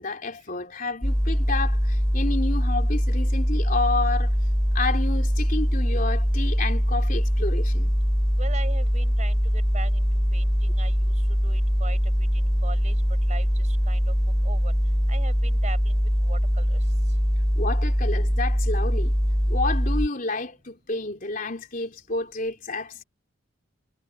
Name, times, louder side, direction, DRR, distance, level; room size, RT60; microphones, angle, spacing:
voice 1, 0.0-4.3 4.7-8.0 17.5-19.2 19.5-23.0, left 3 dB, 40° left, 3.8 m, -30 dB
sound 1, 1.0-20.1, equal, ahead, 4.1 m, -22 dB
voice 2, 8.4-10.0 10.3-11.1 11.4-12.0 12.3-13.0 13.3-14.1 14.4-14.7 15.1-16.8, right 3 dB, 35° right, 5.5 m, -40 dB
head